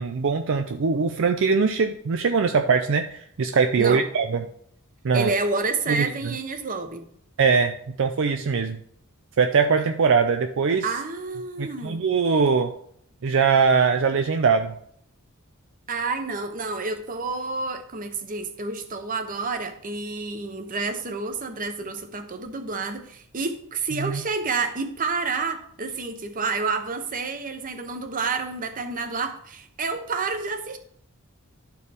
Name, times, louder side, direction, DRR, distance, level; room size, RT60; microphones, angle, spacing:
voice 1, 0.0-4.5 5.0-5.3 5.9-6.1 7.4-8.8 9.4-10.8 11.6-12.7 13.2-14.7 24.0-24.2, right 5 dB, 60° right, 6 dB, 0.5 m, -21 dB
voice 2, 5.1-7.1 10.8-12.0 15.9-30.8, right 4 dB, 40° right, 8 dB, 0.8 m, -29 dB
12.0 x 4.6 x 3.4 m, 0.66 s
head